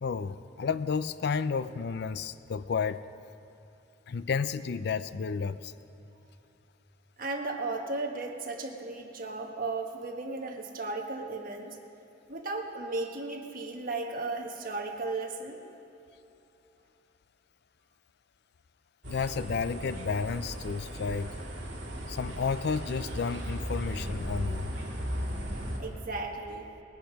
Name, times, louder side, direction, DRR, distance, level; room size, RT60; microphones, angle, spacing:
voice 1, 0.0-3.0 4.1-5.7 19.0-21.3 22.1-24.7, left 5 dB, 60° left, 14 dB, 0.4 m, -31 dB
voice 2, 7.2-11.8 12.3-15.6 25.8-26.7, right 3 dB, 50° right, 1 dB, 1.4 m, -35 dB
sound 1, 19.0-25.8, equal, 70° right, 2.6 m, -36 dB
19.5 x 10.5 x 5.3 m, 2.9 s
head